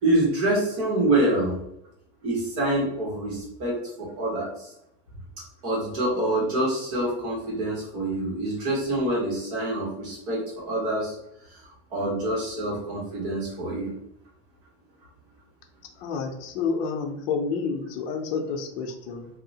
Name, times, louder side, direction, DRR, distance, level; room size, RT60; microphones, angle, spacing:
voice 1, 0.0-1.6 2.2-4.7 5.6-11.1 11.9-13.9, right 1 dB, 45° right, -4 dB, 1.1 m, -26 dB
voice 2, 16.0-19.3, left 5 dB, 70° left, 4 dB, 0.6 m, -29 dB
2.7 x 2.1 x 2.7 m, 0.78 s
cardioid pair, 165°, 31 cm